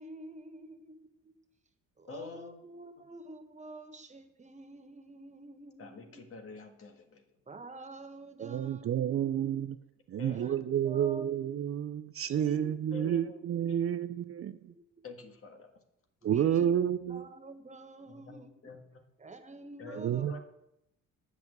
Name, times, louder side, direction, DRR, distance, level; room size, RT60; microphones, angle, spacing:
voice 1, 0.0-1.4 2.0-6.2 7.5-9.3 10.2-11.3 12.2-12.8 14.7-15.0 16.2-16.7 17.1-18.5 19.2-20.4, right 2 dB, 25° right, 1.3 m, -48 dB
voice 2, 2.1-2.6 5.8-7.3 10.2-10.5 10.9-11.1 12.9-13.4 13.7-13.9 15.0-15.7 18.0-19.0 19.8-20.4, left 4 dB, 45° left, 1.6 m, -47 dB
voice 3, 8.4-9.8 10.1-14.7 16.2-17.2 20.0-20.4, right 10 dB, 50° right, 0.5 m, -30 dB
8.2 x 6.0 x 7.9 m
cardioid pair, 90°, 30 cm